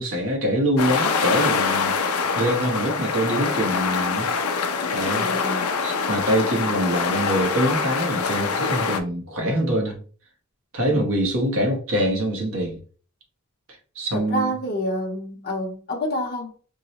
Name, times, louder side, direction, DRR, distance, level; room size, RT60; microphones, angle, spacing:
voice 1, 0.0-1.9 2.3-4.3 4.9-5.3 5.8-10.0 10.7-12.8 13.9-14.5, equal, 65° right, 0.9 m, -24 dB
sound 1, 0.8-9.0, left 5 dB, 80° left, 0.5 m, -24 dB
voice 2, 5.1-5.7 10.9-11.0 14.1-16.5, equal, 45° left, 0.7 m, -28 dB
4.6 x 2.0 x 2.8 m
head